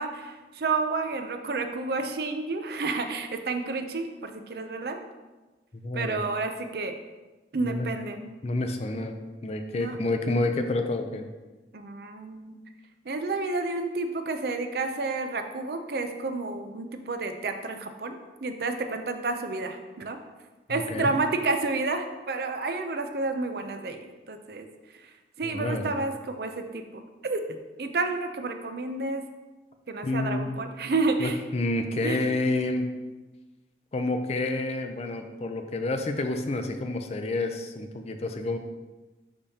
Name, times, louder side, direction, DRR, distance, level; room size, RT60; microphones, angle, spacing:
voice 1, 0.0-5.0 5.9-6.9 7.5-8.3 9.7-10.0 11.7-12.6 13.1-18.2 18.4-20.2 20.7-24.0 24.3-24.7 25.4-27.4 27.8-29.2 29.9-31.4 32.0-32.3, right 3 dB, 60° right, 7 dB, 0.5 m, -30 dB
voice 2, 5.7-6.2 7.6-7.9 8.4-9.1 9.4-11.3 20.7-21.1 25.4-26.0 30.0-30.6 31.2-32.9 33.9-38.6, left 2 dB, 35° left, 6 dB, 0.4 m, -29 dB
10.0 x 3.5 x 2.8 m, 1.2 s
head